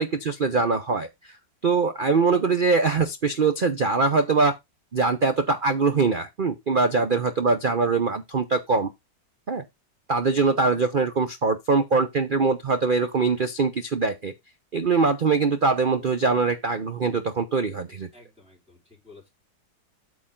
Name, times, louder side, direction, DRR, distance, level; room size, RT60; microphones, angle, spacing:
voice 1, 0.0-1.4 1.6-4.6 4.9-8.9 9.5-9.6 10.1-14.3 14.7-18.1, right 4 dB, 70° right, 0.5 m, -23 dB
voice 2, 6.9-7.4 18.1-19.3, left 2 dB, 5° right, 4.3 m, -51 dB
8.7 x 6.2 x 3.7 m
omnidirectional pair, 2.0 m